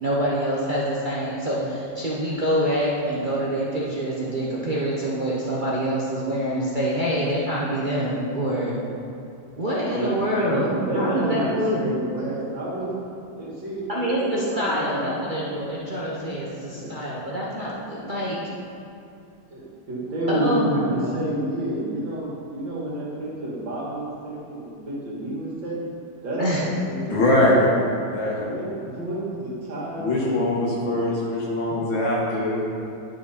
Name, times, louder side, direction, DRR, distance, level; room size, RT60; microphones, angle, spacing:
voice 1, 0.0-8.8 9.5-11.9 13.9-18.4 20.3-21.1 26.4-26.6, equal, 40° right, -6 dB, 0.7 m, -26 dB
voice 2, 10.4-12.9 13.4-15.1 16.6-17.1 19.5-27.9 28.4-31.0, right 1 dB, 75° right, -6 dB, 2.5 m, -30 dB
voice 3, 27.1-27.6 28.1-28.3 30.0-32.6, left 1 dB, 85° left, -5 dB, 2.4 m, -22 dB
11.5 x 4.7 x 4.1 m, 2.6 s
omnidirectional pair, 2.1 m